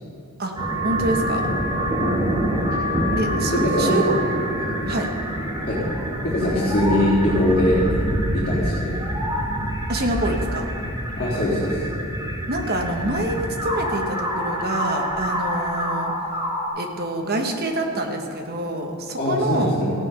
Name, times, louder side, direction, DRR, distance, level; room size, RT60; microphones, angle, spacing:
sound 1, 0.6-16.7, equal, 15° right, 2.1 m, -26 dB
voice 1, 0.8-1.4 3.1-4.0 4.8-5.1 9.9-10.7 12.5-16.1 16.7-19.7, right 1 dB, 45° right, 3 dB, 1.3 m, -26 dB
voice 2, 3.5-4.0 4.6-4.7 5.6-5.8 6.2-8.0 8.3-9.0 11.2-11.8 19.2-19.9, left 1 dB, 45° left, -12 dB, 3.5 m, -22 dB
15.5 x 9.3 x 5.6 m, 2.8 s
head